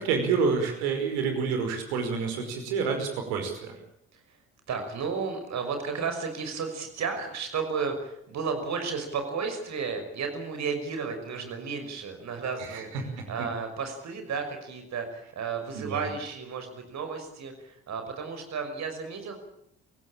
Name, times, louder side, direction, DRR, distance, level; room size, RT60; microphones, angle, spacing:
voice 1, 0.0-3.8 12.6-13.3 15.7-16.1, right 5 dB, 70° right, 5 dB, 5.4 m, -28 dB
voice 2, 4.7-12.9 13.3-19.4, right 5 dB, 50° right, 6 dB, 6.1 m, -33 dB
27.5 x 16.5 x 8.8 m, 0.74 s
figure-of-eight pair, 50°, 35 cm